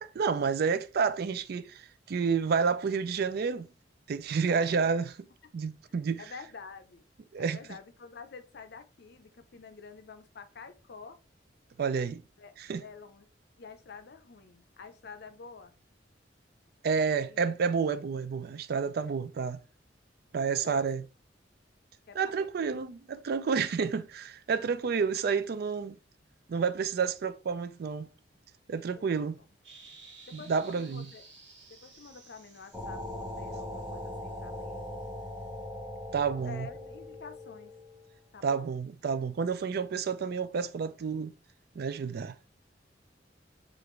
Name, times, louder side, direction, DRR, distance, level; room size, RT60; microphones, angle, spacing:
voice 1, 0.0-3.7 4.1-5.1 5.5-6.2 7.3-7.6 11.8-12.2 12.6-12.8 16.8-19.6 20.3-21.0 22.2-26.0 26.5-28.1 28.7-29.4 30.3-31.1 36.1-36.7 38.4-41.3 41.7-42.3, right 5 dB, 55° right, 0.4 m, -30 dB
voice 2, 4.5-5.1 6.2-7.0 7.4-11.2 12.4-12.5 12.8-13.3 13.6-15.7 17.1-17.5 20.4-20.9 22.1-22.9 28.8-29.5 30.3-31.2 31.7-34.9 36.5-37.7 38.3-38.7, left 5 dB, 60° left, 0.6 m, -48 dB
sound 1, 29.6-35.5, right 4 dB, 75° right, 1.3 m, -56 dB
sound 2, 32.7-38.2, left 1 dB, 10° right, 0.7 m, -40 dB
4.8 x 2.5 x 3.1 m
head